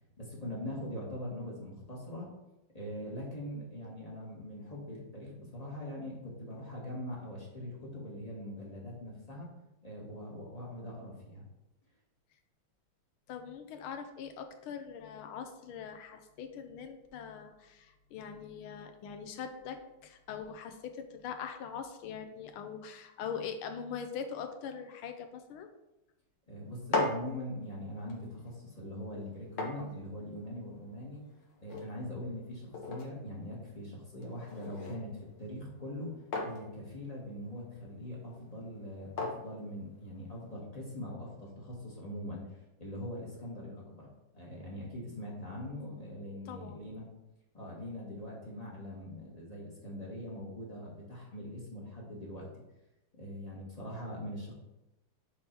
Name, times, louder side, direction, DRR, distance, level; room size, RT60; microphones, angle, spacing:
voice 1, 0.2-2.3 2.7-9.5 9.8-11.4 26.5-31.2 31.6-35.1 35.4-42.4 42.8-44.1 44.3-47.1 47.5-52.5 53.1-54.5, left 1 dB, 20° left, -4 dB, 1.4 m, -42 dB
voice 2, 13.3-25.7 45.5-45.6 46.5-46.8, left 7 dB, 75° left, 7 dB, 1.5 m, -42 dB
sound 1, 26.6-40.5, left 2 dB, 60° left, 1.5 m, -41 dB
6.9 x 3.6 x 4.4 m, 0.95 s
omnidirectional pair, 2.4 m